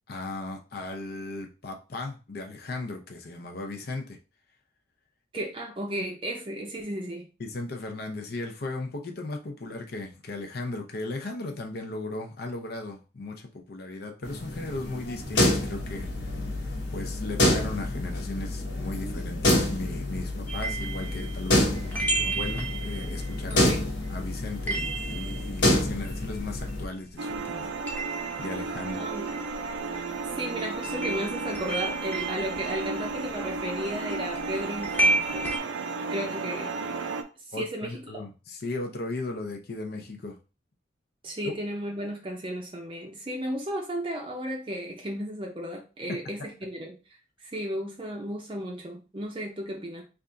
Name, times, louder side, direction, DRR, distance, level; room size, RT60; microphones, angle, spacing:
voice 1, 0.1-4.2 7.4-16.1 16.4-16.5 16.9-21.7 22.1-23.8 24.1-27.7 28.4-29.1 37.5-40.4 41.4-41.5 46.1-46.2, left 2 dB, 55° left, 3 dB, 0.6 m, -36 dB
voice 2, 5.3-7.3 23.5-23.9 29.0-29.3 30.4-35.5 36.1-36.8 37.5-38.2 41.2-47.0 47.4-50.0, right 1 dB, 25° right, 0 dB, 0.6 m, -34 dB
sound 1, 14.2-26.8, left 1 dB, 75° left, 1.0 m, -28 dB
sound 2, 20.5-27.1 27.3-35.6, right 2 dB, 10° left, 0.8 m, -33 dB
sound 3, 27.2-37.2, right 3 dB, 85° right, 0.5 m, -33 dB
3.4 x 2.5 x 3.8 m, 0.32 s
head